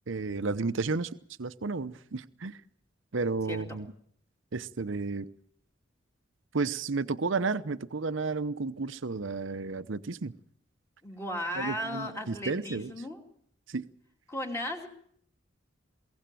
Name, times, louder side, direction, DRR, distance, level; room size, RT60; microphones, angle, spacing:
voice 1, 0.1-1.1 1.4-2.6 3.1-3.9 4.5-5.3 6.5-10.3 11.6-12.9 13.7-13.8, right 4 dB, 75° right, 13 dB, 0.8 m, -32 dB
voice 2, 3.5-3.8 11.0-13.2 14.3-14.9, left 1 dB, 15° left, 2 dB, 2.7 m, -36 dB
22.5 x 17.0 x 7.6 m, 0.64 s
head